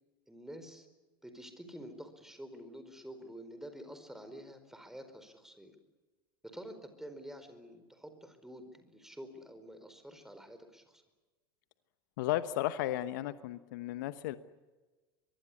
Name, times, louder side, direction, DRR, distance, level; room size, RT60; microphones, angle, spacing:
voice 1, 0.3-0.9 1.2-5.7 6.4-11.0, equal, 5° right, 9 dB, 4.6 m, -48 dB
voice 2, 12.2-14.4, left 14 dB, 60° left, 14 dB, 1.1 m, -34 dB
23.5 x 23.5 x 8.6 m, 1.2 s
figure-of-eight pair, 80°, 12 cm